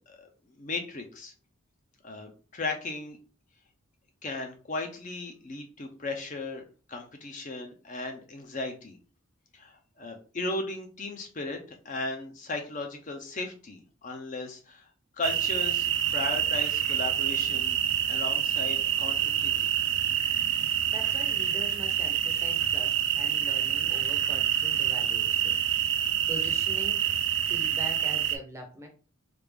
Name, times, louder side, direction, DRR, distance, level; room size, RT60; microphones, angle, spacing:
voice 1, 0.6-1.3 2.0-3.2 4.2-9.0 9.5-14.9 15.1-17.8 18.1-19.7, left 2 dB, 35° left, 3 dB, 0.5 m, -36 dB
sound 1, 15.2-28.4, right 10 dB, 60° right, 0.4 m, -27 dB
voice 2, 20.9-27.1 27.5-28.9, equal, 15° right, 3 dB, 0.6 m, -43 dB
3.3 x 2.4 x 3.3 m, 0.37 s
head